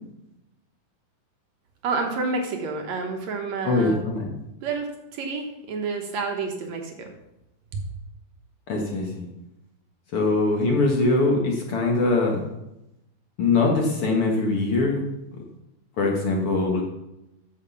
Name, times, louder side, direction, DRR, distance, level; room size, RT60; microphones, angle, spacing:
voice 1, 1.8-4.0 4.6-7.1 7.7-7.8, right 4 dB, 65° right, 3 dB, 2.2 m, -29 dB
voice 2, 3.7-4.3 8.7-9.3 10.1-12.4 13.4-15.0 16.0-16.8, left 3 dB, 55° left, 0 dB, 1.9 m, -22 dB
9.0 x 6.5 x 7.0 m, 0.89 s
omnidirectional pair, 3.6 m